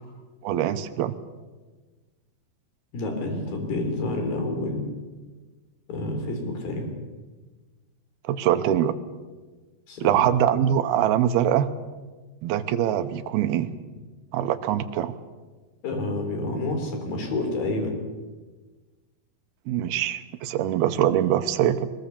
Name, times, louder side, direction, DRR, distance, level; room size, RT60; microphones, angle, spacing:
voice 1, 0.4-1.2 8.3-8.9 10.0-11.7 12.4-13.7 14.3-15.1 19.7-21.9, right 11 dB, 80° right, 10 dB, 2.6 m, -23 dB
voice 2, 2.9-4.8 5.9-6.9 9.9-10.2 15.8-18.0, left 2 dB, 60° left, 4 dB, 5.1 m, -28 dB
21.5 x 21.0 x 7.0 m, 1.3 s
omnidirectional pair, 4.8 m